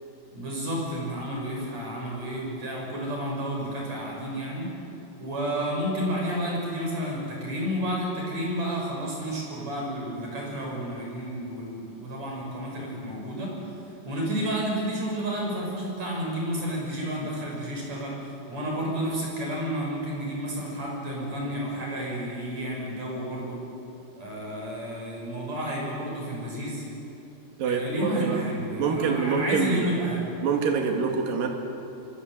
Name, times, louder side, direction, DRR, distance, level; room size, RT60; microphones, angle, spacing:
voice 1, 0.3-4.7 5.2-13.5 14.0-23.6 24.2-26.8 27.6-30.3, equal, 40° right, -2 dB, 7.7 m, -31 dB
voice 2, 27.6-28.5 28.8-29.9 30.4-31.5, right 5 dB, 55° right, 2 dB, 3.7 m, -26 dB
26.5 x 25.0 x 8.3 m, 2.8 s
omnidirectional pair, 5.0 m